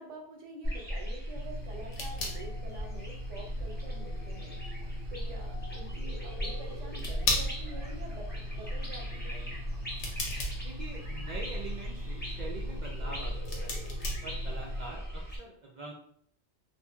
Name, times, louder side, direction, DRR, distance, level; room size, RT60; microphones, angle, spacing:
voice 1, 0.0-9.5, right 2 dB, 90° right, 1 dB, 1.1 m, -47 dB
sound 1, 0.6-15.4, equal, 15° left, 0.5 m, -37 dB
sound 2, 1.3-14.9, left 2 dB, 80° left, 1.0 m, -39 dB
voice 2, 10.6-13.3 13.6-13.8 14.2-15.9, right 3 dB, 60° right, -2 dB, 0.5 m, -44 dB
3.0 x 2.6 x 2.2 m, 0.63 s
omnidirectional pair, 1.2 m